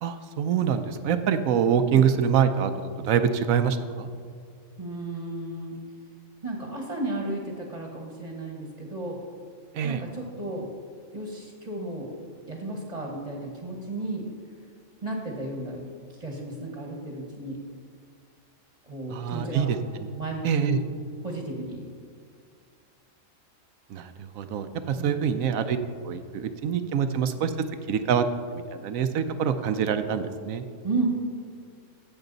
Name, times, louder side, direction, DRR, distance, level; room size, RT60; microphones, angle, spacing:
voice 1, 0.0-4.1 9.7-10.0 19.1-19.8 20.4-20.8 23.9-25.8 26.0-27.5 27.9-28.3 28.5-30.6, right 7 dB, 75° right, 9 dB, 1.0 m, -25 dB
voice 2, 4.8-5.8 6.4-9.2 9.8-10.7 11.1-12.1 12.5-14.3 15.0-15.8 16.2-17.6 18.9-19.7 20.2-20.8 21.2-21.8 25.0-25.2 30.8-31.1, right 2 dB, 25° right, 1 dB, 1.2 m, -33 dB
16.0 x 6.4 x 4.0 m, 2.1 s
omnidirectional pair, 1.4 m